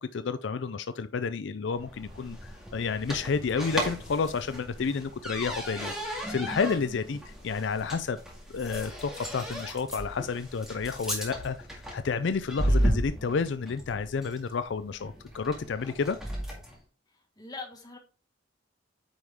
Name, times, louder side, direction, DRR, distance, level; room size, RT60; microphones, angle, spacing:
voice 1, 0.0-8.2 8.5-16.2, left 5 dB, 70° left, 12 dB, 0.4 m, -31 dB
sound 1, 1.7-16.8, equal, 5° right, 2.0 m, -34 dB
voice 2, 12.4-13.0 17.1-18.0, left 3 dB, 20° left, 3 dB, 1.6 m, -44 dB
9.3 x 4.8 x 3.6 m, 0.35 s
head